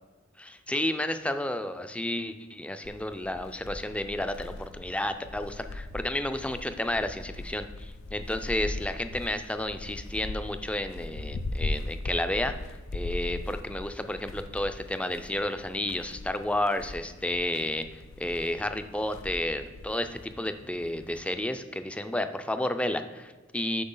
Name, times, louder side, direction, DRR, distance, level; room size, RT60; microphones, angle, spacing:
voice 1, 0.4-12.5 12.9-23.8, left 1 dB, 5° left, 9 dB, 0.4 m, -31 dB
sound 1, 2.8-21.4, left 2 dB, 85° left, 0.5 m, -39 dB
7.9 x 5.8 x 3.8 m, 1.3 s
head